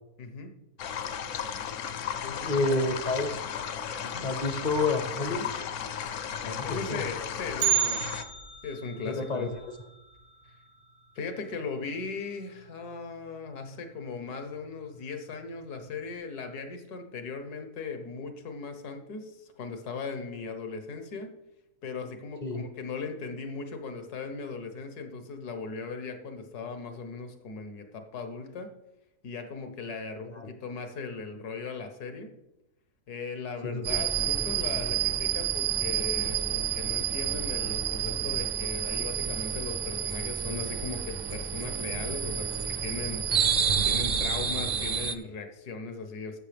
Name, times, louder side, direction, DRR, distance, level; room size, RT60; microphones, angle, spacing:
voice 1, 0.2-0.5 2.2-2.7 4.0-4.3 6.4-8.1 8.6-9.5 11.1-21.3 21.8-28.7 29.2-32.3 33.1-43.3 43.8-46.4, left 4 dB, 80° left, 7 dB, 1.6 m, -38 dB
sound 1, 0.8-8.2, left 8 dB, 65° left, 0.9 m, -35 dB
voice 2, 2.4-3.4 4.2-5.5 6.5-7.0 9.1-9.5 22.4-22.6 30.3-30.5 33.6-34.0, left 3 dB, 50° left, 6 dB, 0.5 m, -29 dB
Bell, 7.6-11.7 12.0-12.1 12.6-12.7 13.5-13.6 14.3-14.6 15.0-15.1, right 12 dB, 85° right, 1.6 m, -33 dB
sound 2, 33.8-45.2, right 8 dB, 60° right, 0.6 m, -29 dB
13.5 x 6.3 x 3.4 m, 0.92 s
omnidirectional pair, 1.6 m